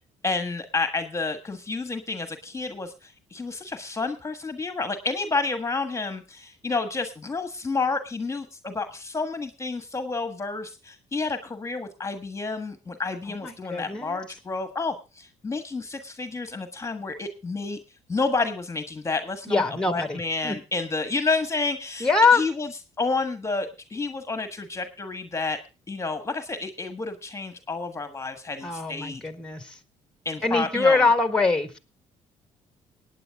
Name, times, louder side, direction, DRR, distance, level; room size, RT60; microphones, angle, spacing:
voice 1, 0.2-17.8 18.1-22.7 23.0-25.6 25.9-29.2 30.2-31.1, left 3 dB, 20° left, 9 dB, 1.5 m, -30 dB
voice 2, 13.4-14.2 19.5-20.6 22.0-22.4 28.6-29.8 30.4-31.8, left 3 dB, 5° left, 9 dB, 1.6 m, -23 dB
18.5 x 9.3 x 3.6 m, 0.30 s
supercardioid pair, 80°, 13 cm